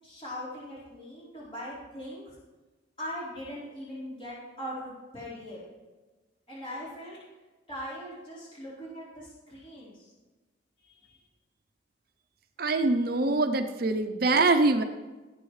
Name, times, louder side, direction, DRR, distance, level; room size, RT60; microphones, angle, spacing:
voice 1, 0.0-2.3 3.0-5.6 6.5-7.2 7.7-10.1 10.8-11.2, equal, 30° left, -10 dB, 4.4 m, -40 dB
voice 2, 12.6-14.8, right 3 dB, 50° right, 7 dB, 0.6 m, -24 dB
18.0 x 8.6 x 3.2 m, 1.2 s
head